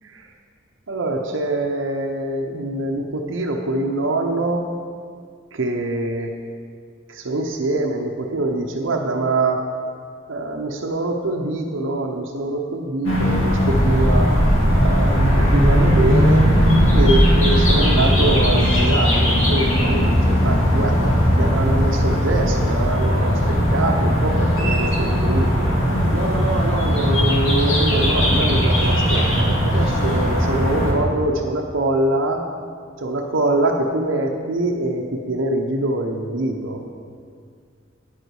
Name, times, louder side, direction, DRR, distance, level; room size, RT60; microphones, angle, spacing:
voice 1, 0.9-4.7 5.5-6.3 7.1-9.6 10.3-14.3 14.8-16.5 16.9-25.7 26.1-32.5 33.0-36.8, right 2 dB, 80° right, 1 dB, 0.7 m, -24 dB
sound 1, 13.0-30.9, equal, 80° left, 2.3 m, -18 dB
9.7 x 8.0 x 4.7 m, 2.1 s
head